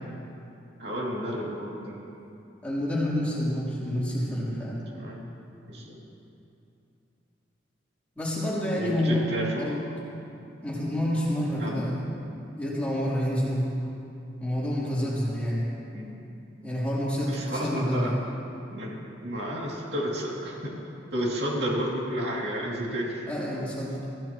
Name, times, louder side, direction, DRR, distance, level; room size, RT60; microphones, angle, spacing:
voice 1, 0.8-2.0 5.0-5.2 5.7-6.0 8.7-9.7 11.6-11.9 15.9-16.2 17.3-18.1 18.7-19.0 19.2-20.7 21.1-23.2, equal, 55° right, -4 dB, 2.7 m, -31 dB
voice 2, 2.6-4.8 8.1-9.2 9.6-9.8 10.6-12.0 12.6-13.7 14.4-15.6 16.6-18.1 23.3-24.0, left 1 dB, 5° left, -8 dB, 3.4 m, -28 dB
25.5 x 15.0 x 3.0 m, 2.8 s
head